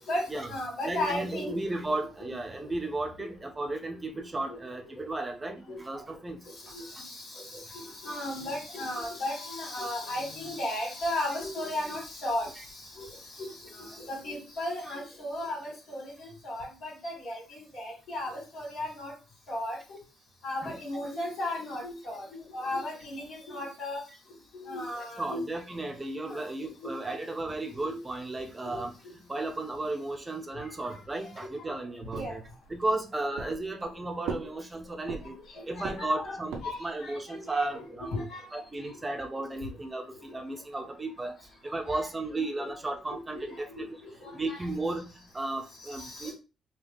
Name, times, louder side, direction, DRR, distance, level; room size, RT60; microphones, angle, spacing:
voice 1, 0.1-1.6 1.8-1.9 2.2-2.3 3.2-3.3 4.5-4.6 5.7-5.8 6.7-12.5 13.0-13.1 13.4-19.1 19.5-19.8 20.4-24.0 24.5-25.4 26.2-26.4 26.8-26.9 27.8-28.0 28.6-28.8 30.8-30.9 31.4-31.5 32.1-32.4 35.6-37.4 37.7-37.8 38.1-38.4 41.9-42.0 42.3-42.7 43.3-43.5 43.8-43.9 44.2-44.6 46.0-46.3, left 1 dB, 70° left, -1 dB, 2.2 m, -35 dB
voice 2, 0.8-6.7 20.6-21.0 25.2-28.9 29.3-32.4 32.7-35.4 35.7-36.5 36.8-38.2 38.5-41.4 41.6-43.8 44.3-46.3, right 2 dB, 20° right, 4 dB, 0.6 m, -34 dB
sound 1, 32.1-32.9 33.4-33.9 34.2-35.5 35.8-36.9, right 5 dB, 80° right, 0.6 m, -38 dB
3.8 x 2.3 x 3.4 m, 0.31 s
cardioid pair, 90°, 0 cm